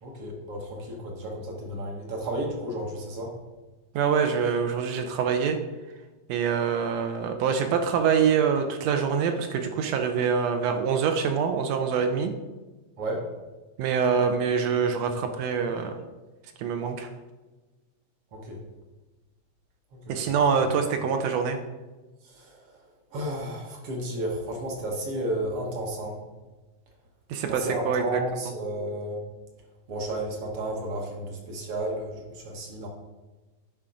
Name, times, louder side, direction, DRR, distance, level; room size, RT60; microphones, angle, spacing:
voice 1, 0.0-3.3 13.0-13.3 18.3-18.6 20.1-20.3 22.4-22.5 23.1-26.2 27.5-29.2 29.9-32.9, right 1 dB, 60° right, 0 dB, 1.7 m, -32 dB
voice 2, 3.9-5.6 6.3-12.3 13.8-16.0 16.6-17.1 20.1-21.6 27.3-28.4, right 6 dB, 75° right, 6 dB, 1.7 m, -25 dB
10.0 x 3.7 x 5.0 m, 1.2 s
omnidirectional pair, 3.3 m